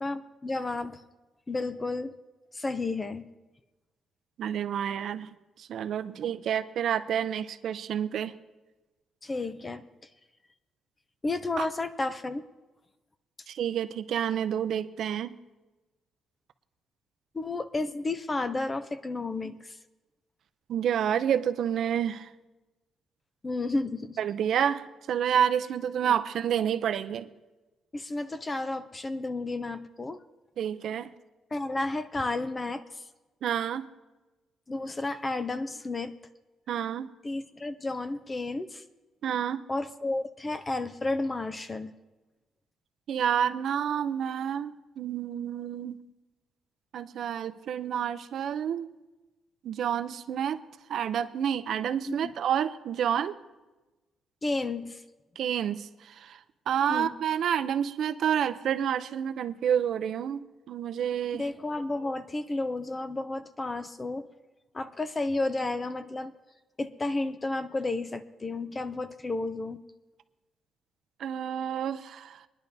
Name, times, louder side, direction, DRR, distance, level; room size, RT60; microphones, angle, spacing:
voice 1, 0.0-1.0 1.5-2.1 2.5-3.3 9.2-9.8 11.2-12.4 17.3-19.8 23.4-24.2 26.0-26.1 27.9-30.2 31.5-33.0 34.7-36.1 37.2-38.8 39.7-41.9 52.1-52.3 54.4-55.0 56.9-57.1 61.3-64.3 64.7-66.3 66.8-69.8, left 2 dB, 15° left, 11 dB, 0.4 m, -32 dB
voice 2, 4.4-5.3 5.6-8.3 11.6-11.7 13.5-15.4 20.7-22.3 24.2-27.3 30.6-31.1 33.4-33.9 36.7-37.1 39.2-39.6 43.1-46.0 46.9-48.9 49.6-50.6 50.9-53.4 55.4-56.4 56.7-60.4 60.7-61.4 71.2-72.4, right 9 dB, 55° right, 11 dB, 0.5 m, -29 dB
23.5 x 10.5 x 2.7 m, 1.1 s
cardioid pair, 180°, 0 cm